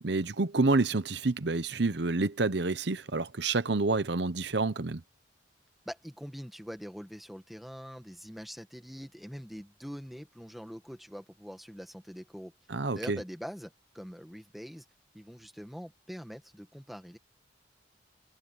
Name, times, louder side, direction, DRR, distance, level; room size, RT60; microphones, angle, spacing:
voice 1, 0.0-5.0 12.7-13.2, right 3 dB, 65° right, 0.9 m, -28 dB
voice 2, 5.9-12.5 12.9-14.8 15.1-17.2, equal, ahead, 1.8 m, -44 dB
head